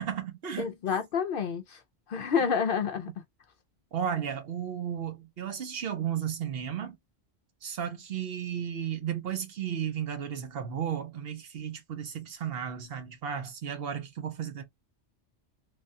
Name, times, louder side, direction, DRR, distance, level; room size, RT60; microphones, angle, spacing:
voice 1, 0.0-0.7 3.9-7.0 7.6-14.6, right 8 dB, 60° right, 0.8 m, -34 dB
voice 2, 0.6-1.8 2.1-3.1, left 6 dB, 60° left, 0.6 m, -29 dB
3.3 x 2.3 x 2.5 m
omnidirectional pair, 1.2 m